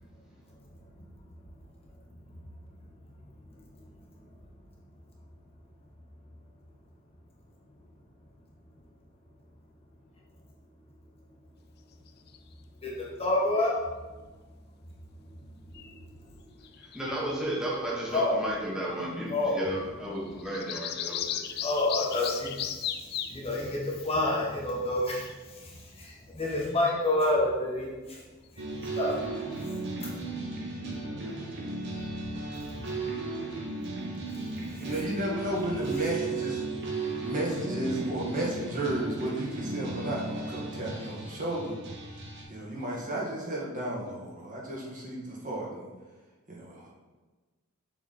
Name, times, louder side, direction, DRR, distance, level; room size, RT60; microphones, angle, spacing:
voice 1, 3.5-3.8 4.2-4.3 12.8-13.8 15.2-16.4 18.1-18.4 19.3-19.6 21.6-28.2 28.5-29.2 30.0-30.2 31.0-31.2 34.6-34.9, left 2 dB, 30° left, -4 dB, 1.2 m, -30 dB
sound 1, 12.1-12.4 15.7-16.0 16.6-17.2 20.2-23.4 25.1-25.4 26.7-27.1, left 9 dB, 50° left, 0.4 m, -36 dB
voice 2, 16.8-21.6, right 1 dB, 5° right, -5 dB, 1.2 m, -33 dB
sound 2, 28.6-42.4, right 3 dB, 55° right, 1.1 m, -35 dB
voice 3, 34.8-36.6 37.2-41.8 42.5-45.9 46.5-46.9, right 1 dB, 40° right, -4 dB, 1.6 m, -33 dB
6.9 x 4.0 x 4.2 m, 1.3 s
head